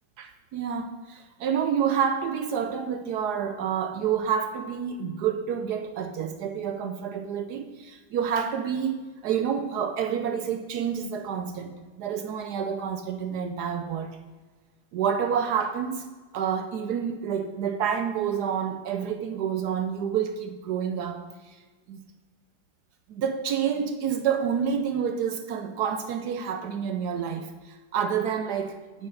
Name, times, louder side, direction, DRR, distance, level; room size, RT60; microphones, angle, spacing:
voice 1, 0.2-14.2 14.9-16.1 16.3-21.6 21.9-22.0 23.1-29.1, right 7 dB, 75° right, 1.0 m, -28 dB
7.7 x 6.8 x 5.3 m
omnidirectional pair, 2.0 m